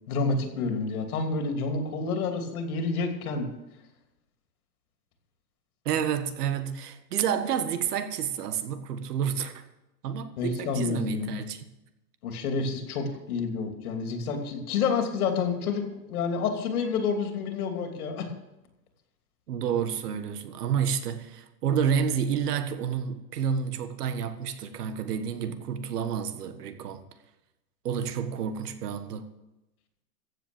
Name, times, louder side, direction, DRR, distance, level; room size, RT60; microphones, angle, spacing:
voice 1, 0.1-3.5 10.4-11.4 12.2-18.3, left 4 dB, 60° left, 2.9 m, -29 dB
voice 2, 5.8-9.6 10.0-11.6 19.5-27.0 27.8-29.3, right 8 dB, 70° right, 1.6 m, -29 dB
14.5 x 7.8 x 6.9 m
hypercardioid pair, 150°, 49 cm